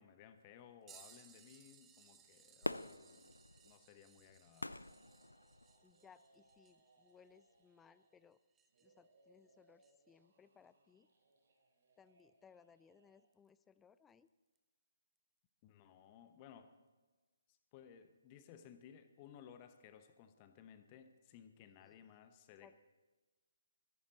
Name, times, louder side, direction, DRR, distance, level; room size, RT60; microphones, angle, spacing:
voice 1, 0.0-3.3 3.6-4.8 15.6-16.7 17.5-22.8, left 8 dB, 25° left, 10 dB, 1.0 m, -59 dB
sound 1, 0.9-9.1 9.8-9.9 12.2-12.3 13.3-13.5 14.6-14.7, right 8 dB, 10° right, 0.8 m, -65 dB
Fireworks, 2.6-6.0 6.5-6.6, left 2 dB, 80° left, 0.4 m, -45 dB
sound 2, 4.7-8.2 8.7-13.2, right 2 dB, 50° right, 3.7 m, -72 dB
voice 2, 5.8-8.4 8.8-11.1 12.0-14.3 21.8-22.1 22.6-22.8, left 6 dB, 10° left, 16 dB, 0.4 m, -65 dB
22.0 x 11.5 x 4.1 m, 1.3 s
figure-of-eight pair, 135°, 0 cm